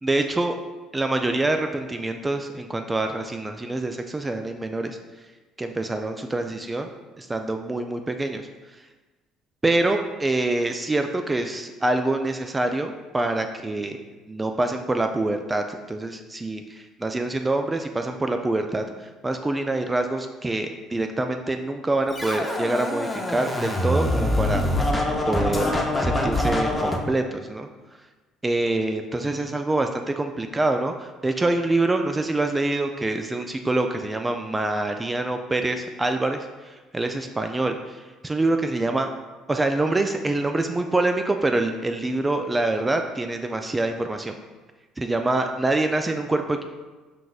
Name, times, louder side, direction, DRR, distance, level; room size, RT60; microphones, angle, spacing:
voice 1, 0.0-0.6 0.9-5.0 5.6-6.9 7.2-8.4 8.7-8.8 9.6-14.0 14.3-24.6 25.3-25.7 26.0-27.7 28.4-39.1 39.5-44.3 45.0-46.6, right 2 dB, 20° right, 5 dB, 0.3 m, -25 dB
Scratching (performance technique), 22.1-27.0, left 1 dB, 15° left, 0.7 m, -24 dB
4.9 x 3.8 x 2.4 m, 1.3 s
hypercardioid pair, 60°, 0 cm